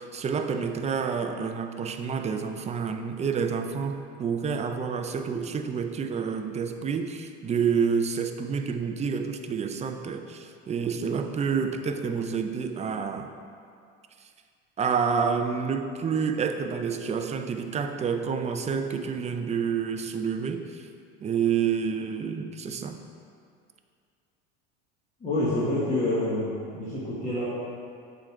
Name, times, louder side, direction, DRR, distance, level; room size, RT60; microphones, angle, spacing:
voice 1, 0.0-13.3 14.8-20.9 21.2-23.0, right 6 dB, 20° right, 7 dB, 0.4 m, -28 dB
voice 2, 25.2-27.4, left 1 dB, 25° left, -9 dB, 1.5 m, -27 dB
7.2 x 3.8 x 4.6 m, 2.3 s
hypercardioid pair, 85°, 32 cm